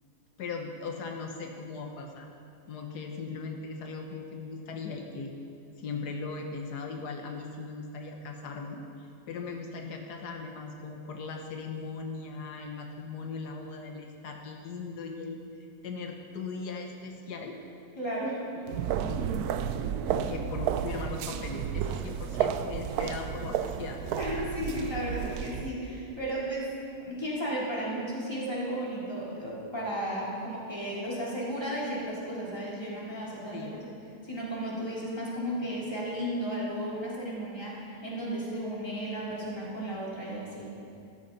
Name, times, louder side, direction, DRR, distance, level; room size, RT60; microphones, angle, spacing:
voice 1, 0.4-2.3 2.7-5.3 5.8-15.4 15.8-17.6 18.9-19.4 20.1-24.2 33.5-33.8, left 4 dB, 85° left, 3 dB, 1.6 m, -39 dB
voice 2, 18.0-18.4 24.2-26.7 27.0-33.9 34.2-40.7, equal, 15° left, -6 dB, 3.3 m, -34 dB
sound 1, 18.7-25.7, right 9 dB, 75° right, 1.1 m, -32 dB
15.0 x 13.0 x 4.0 m, 2.5 s
omnidirectional pair, 1.7 m